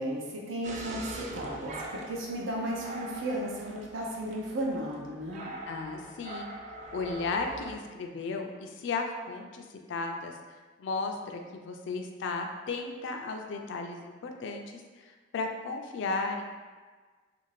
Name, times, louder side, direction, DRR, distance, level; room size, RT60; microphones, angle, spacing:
voice 1, 0.0-5.5, right 1 dB, 85° right, -1 dB, 0.6 m, -34 dB
sound 1, 0.6-7.8, right 2 dB, 40° right, 0.3 m, -43 dB
voice 2, 5.7-6.5 6.9-10.3 10.8-16.4, left 3 dB, 65° left, 4 dB, 0.3 m, -35 dB
2.5 x 2.4 x 3.1 m, 1.4 s
head